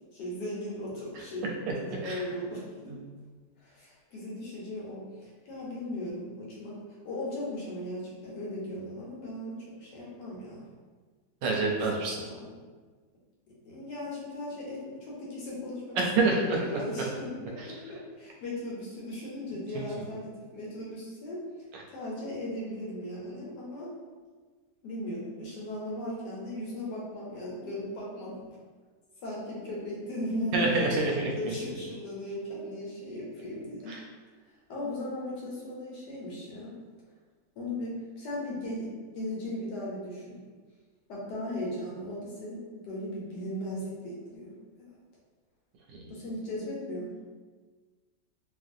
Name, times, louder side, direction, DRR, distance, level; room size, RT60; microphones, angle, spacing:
voice 1, 0.1-2.9 3.6-10.6 12.2-12.5 13.6-21.4 21.9-23.9 24.8-28.6 29.2-30.7 31.2-33.9 34.7-36.8 37.6-40.4 41.1-44.9 46.1-47.2, left 1 dB, 70° left, -5 dB, 1.3 m, -37 dB
voice 2, 11.4-12.2 16.0-16.4 21.7-21.8 30.5-31.3 33.9-34.0 45.9-46.0, right 3 dB, 80° right, -1 dB, 1.2 m, -27 dB
2.9 x 2.5 x 2.5 m, 1.4 s
omnidirectional pair, 2.0 m